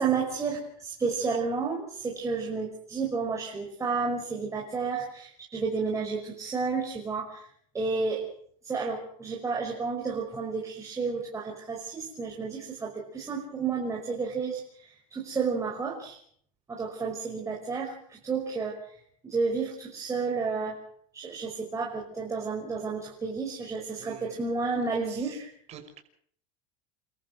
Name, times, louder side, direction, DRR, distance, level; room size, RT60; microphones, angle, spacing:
voice 1, 0.0-7.5 7.7-8.2 8.6-16.2 16.7-18.9 19.2-20.8 21.1-25.5, right 4 dB, 15° right, -2 dB, 5.6 m, -31 dB
voice 2, 24.0-24.4 25.1-25.4 25.7-26.0, right 8 dB, 40° right, 4 dB, 5.8 m, -47 dB
29.5 x 14.0 x 7.9 m, 0.63 s
supercardioid pair, 130°, 17 cm